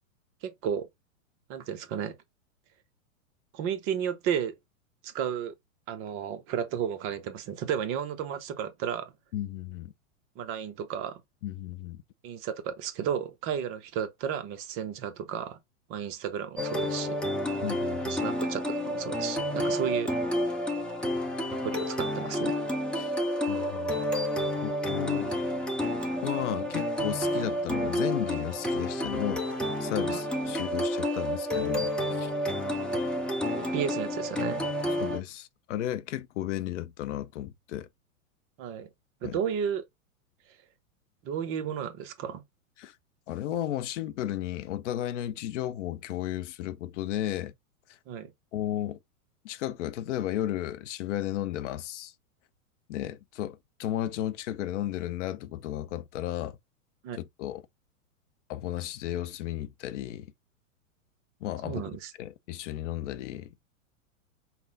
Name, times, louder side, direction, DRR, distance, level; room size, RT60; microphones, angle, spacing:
voice 1, 0.4-0.9 1.5-2.2 3.5-4.5 5.0-5.5 5.9-9.1 10.4-11.2 12.2-15.6 15.9-17.2 18.1-20.1 21.5-22.6 30.0-30.2 33.6-34.7 38.6-38.9 39.2-39.8 41.2-42.4 48.1-48.3 57.0-57.2 61.6-62.1, right 8 dB, 30° right, 0.7 m, -33 dB
voice 2, 9.3-9.9 11.4-12.0 17.6-18.2 23.0-23.1 23.5-24.0 24.6-25.3 26.2-32.3 35.0-37.9 39.2-39.4 42.8-42.9 43.3-47.5 48.5-49.0 49.4-52.1 52.9-56.6 57.1-57.6 58.5-60.3 61.4-61.8 62.2-63.5, left 12 dB, 60° left, 0.6 m, -34 dB
sound 1, 16.6-35.2, left 1 dB, ahead, 0.7 m, -30 dB
5.7 x 2.1 x 3.7 m
hypercardioid pair, 130°, 41 cm